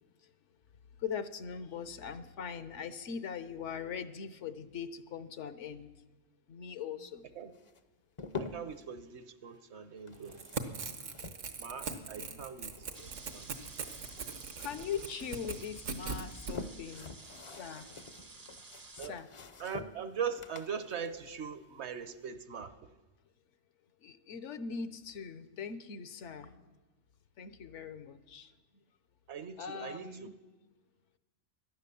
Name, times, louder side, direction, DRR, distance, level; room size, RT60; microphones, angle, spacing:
voice 1, 1.0-5.9 6.5-7.2 12.2-12.4 13.9-14.0 14.6-17.9 18.9-19.3 24.0-26.8 27.4-28.5 29.6-30.3, left 7 dB, 70° left, 13 dB, 1.1 m, -41 dB
sound 1, 7.5-8.8 10.0-12.3 12.6-14.4 14.7-15.6 16.1-22.2, left 4 dB, 35° left, 0.5 m, -47 dB
voice 2, 8.4-10.4 11.6-12.7 13.0-13.5 19.0-19.2 19.6-22.7 29.3-30.1, right 7 dB, 65° right, 12 dB, 1.1 m, -40 dB
Crackle / Tearing, 10.2-16.6, right 5 dB, 80° right, 1.4 m, -41 dB
sound 2, 12.9-19.1, right 3 dB, 25° right, 0.5 m, -52 dB
17.5 x 11.5 x 6.9 m, 1.2 s
omnidirectional pair, 1.3 m